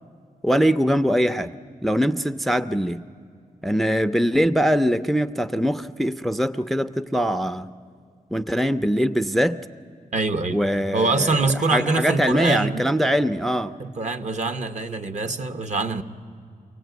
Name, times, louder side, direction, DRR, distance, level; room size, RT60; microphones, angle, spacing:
voice 1, 0.4-1.5 1.8-3.0 3.6-7.7 8.3-9.6 10.5-11.4 11.7-13.7, equal, ahead, 12 dB, 0.5 m, -22 dB
voice 2, 10.1-10.6 10.9-12.9 13.8-16.0, right 3 dB, 50° right, 10 dB, 1.1 m, -24 dB
24.5 x 17.0 x 9.3 m, 2.4 s
cardioid pair, 90°, 15 cm